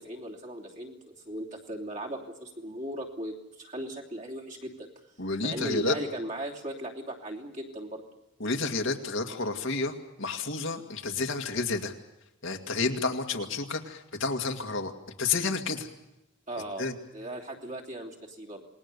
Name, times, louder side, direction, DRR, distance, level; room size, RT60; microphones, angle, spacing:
voice 1, 0.0-4.9 5.4-8.0 16.5-18.6, right 1 dB, 40° right, -1 dB, 3.1 m, -38 dB
voice 2, 5.2-6.0 8.4-11.9 12.4-14.9 15.2-15.9 16.8-16.9, left 3 dB, 75° left, 3 dB, 2.1 m, -30 dB
27.5 x 20.0 x 6.9 m, 0.89 s
head